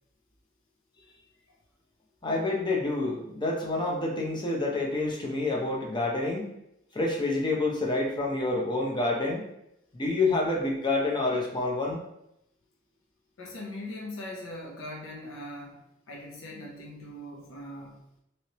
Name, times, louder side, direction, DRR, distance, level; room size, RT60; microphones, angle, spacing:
voice 1, 2.2-6.5 6.9-9.4 9.9-12.0, left 2 dB, 25° left, -1 dB, 0.6 m, -28 dB
voice 2, 13.4-15.8 16.1-18.0, left 1 dB, 85° left, -2 dB, 0.7 m, -40 dB
3.1 x 2.9 x 2.8 m, 0.80 s
head